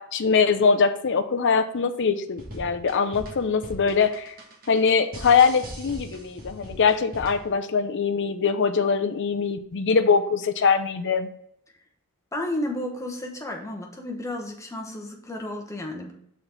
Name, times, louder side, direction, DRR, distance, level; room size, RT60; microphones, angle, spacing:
voice 1, 0.0-4.3 4.7-11.3, left 5 dB, 55° left, 8 dB, 0.6 m, -22 dB
sound 1, 2.3-7.6, right 1 dB, 40° right, 1.5 m, -40 dB
voice 2, 12.3-16.1, left 1 dB, 15° left, 1 dB, 1.1 m, -32 dB
5.9 x 4.1 x 4.4 m, 0.72 s
head